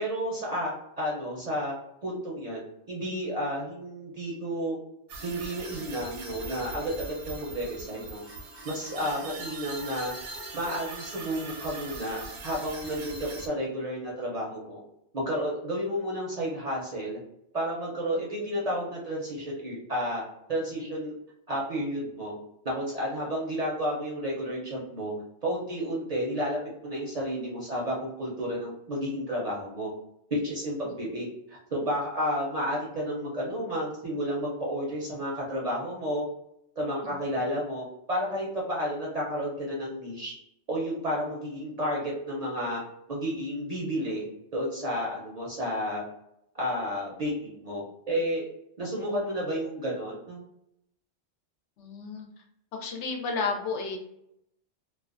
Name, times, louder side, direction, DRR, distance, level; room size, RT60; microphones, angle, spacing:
voice 1, 0.0-1.8 2.0-2.6 2.9-4.8 5.2-8.2 8.6-10.1 10.5-14.8 15.1-17.2 17.5-20.2 20.5-21.2 21.5-22.3 22.6-25.1 25.4-29.9 30.3-36.2 36.8-37.8 38.1-40.3 40.7-42.8 43.1-44.2 44.5-46.0 46.6-48.5 48.8-50.4, equal, 50° right, -4 dB, 0.5 m, -31 dB
sound 1, 5.1-13.5, right 3 dB, 80° right, 0.8 m, -41 dB
voice 2, 51.8-52.3 52.7-54.0, left 4 dB, 85° left, 2 dB, 0.9 m, -32 dB
2.4 x 2.2 x 2.4 m, 0.79 s
omnidirectional pair, 1.2 m